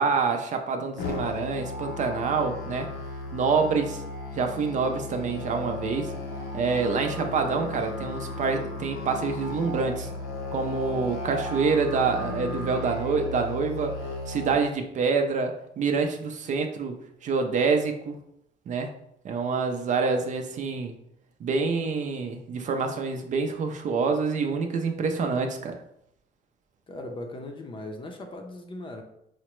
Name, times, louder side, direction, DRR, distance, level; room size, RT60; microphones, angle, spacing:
voice 1, 0.0-2.9 3.3-4.0 4.3-6.1 6.5-10.1 10.5-13.9 14.3-17.0 17.2-18.2 18.7-18.9 19.2-20.9 21.4-25.7, right 4 dB, 45° right, 5 dB, 0.5 m, -26 dB
Musical instrument, 1.0-14.5, left 2 dB, 65° left, 0.6 m, -35 dB
voice 2, 26.9-29.0, left 2 dB, 30° left, 4 dB, 0.6 m, -38 dB
4.8 x 2.1 x 3.0 m, 0.77 s
cardioid pair, 110°, 17 cm